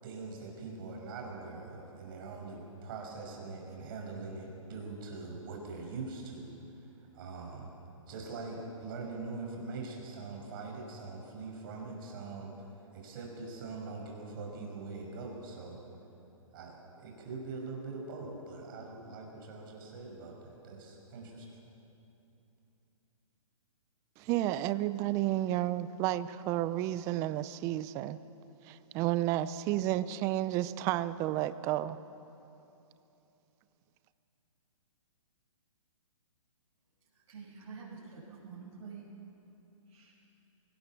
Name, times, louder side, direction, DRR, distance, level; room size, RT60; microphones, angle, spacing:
voice 1, 0.0-6.9 7.1-7.7 8.1-12.5 12.9-15.8 16.5-21.5, right 3 dB, 40° right, 5.7 m, -43 dB
voice 2, 24.2-28.2 28.6-32.0, right 14 dB, 15° right, 0.4 m, -31 dB
voice 3, 37.1-39.0 39.9-40.1, right 5 dB, 60° right, 7.0 m, -48 dB
24.0 x 18.5 x 7.4 m
hypercardioid pair, 150°, 18 cm